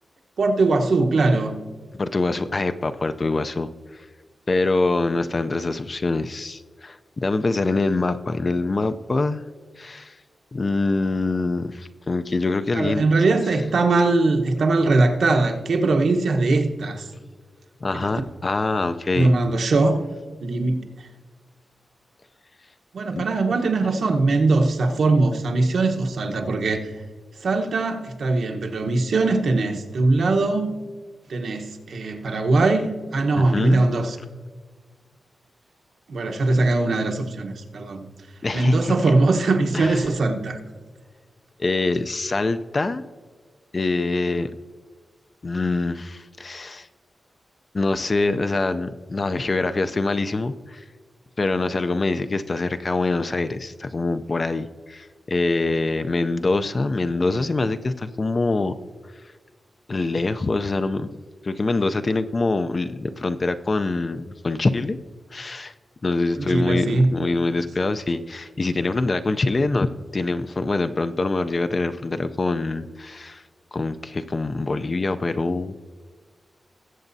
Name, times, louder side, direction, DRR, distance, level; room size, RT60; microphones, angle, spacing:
voice 1, 0.4-1.6 12.7-17.1 17.9-18.1 19.1-20.0 20.4-21.1 22.9-26.9 27.4-30.7 31.3-34.2 36.1-38.1 38.5-40.6 66.3-67.2, right 3 dB, 65° right, 3 dB, 1.1 m, -21 dB
voice 2, 1.9-4.0 4.5-7.0 7.2-9.4 9.8-10.1 10.5-13.1 17.8-19.3 23.1-23.2 33.4-33.9 38.4-38.9 39.7-40.0 41.6-43.0 43.7-44.5 45.4-46.9 47.7-50.8 51.4-58.7 59.9-61.1 61.4-65.0 65.3-65.7 66.0-73.4 73.7-75.8, left 3 dB, 30° left, 10 dB, 0.4 m, -24 dB
20.5 x 7.9 x 2.7 m, 1.5 s
wide cardioid pair, 160°, 0 cm